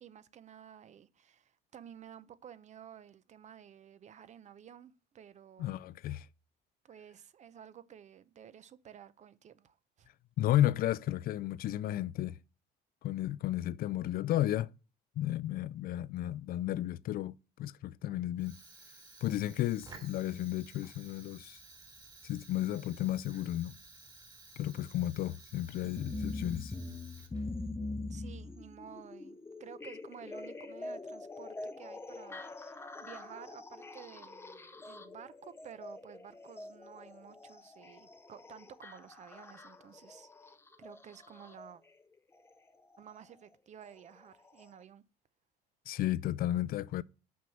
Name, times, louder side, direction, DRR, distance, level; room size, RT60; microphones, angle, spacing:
voice 1, 0.0-5.7 6.8-10.1 28.1-40.3 40.8-41.8 43.0-45.0, right 8 dB, 45° right, 0.7 m, -53 dB
voice 2, 5.6-6.3 10.4-12.4 13.0-14.7 15.2-17.3 17.6-18.5 19.2-21.6 22.2-23.8 24.6-26.7 45.9-47.0, left 13 dB, 60° left, 0.4 m, -33 dB
Fire, 18.3-27.7, right 3 dB, 25° right, 3.1 m, -55 dB
sound 1, 25.8-41.7 42.9-43.0 43.8-43.9 44.6-44.7, left 2 dB, 15° left, 0.7 m, -44 dB
6.1 x 5.5 x 5.8 m
cardioid pair, 110°, 17 cm